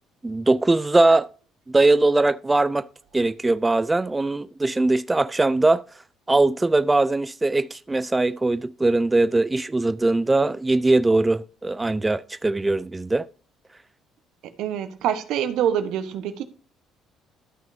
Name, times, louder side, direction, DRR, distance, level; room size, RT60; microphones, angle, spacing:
voice 1, 0.2-1.3 1.7-2.9 3.1-5.8 6.3-13.2, right 2 dB, 20° right, 0.4 m, -21 dB
voice 2, 14.6-16.4, right 9 dB, 70° right, 1.1 m, -25 dB
13.0 x 6.0 x 2.7 m
supercardioid pair, 65°, 0 cm